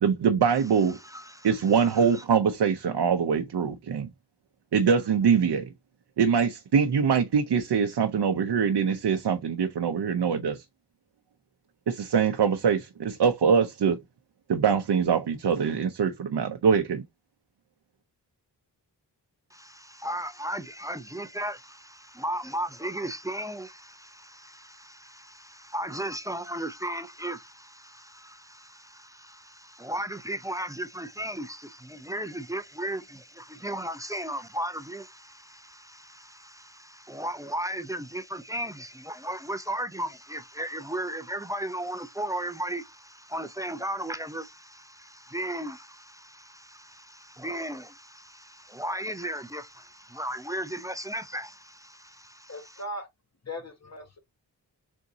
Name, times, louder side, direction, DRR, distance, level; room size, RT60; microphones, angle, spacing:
voice 1, 0.0-1.0 1.4-4.1 4.7-5.7 6.2-10.6 11.9-14.0 14.5-17.0, right 6 dB, 70° right, 0.7 m, -23 dB
voice 2, 0.9-1.5 1.8-2.2 19.5-52.8, right 1 dB, 10° right, 0.5 m, -36 dB
voice 3, 52.5-53.1 53.5-54.2, left 1 dB, 40° left, 1.5 m, -38 dB
3.9 x 3.5 x 2.7 m
cardioid pair, 50°, 42 cm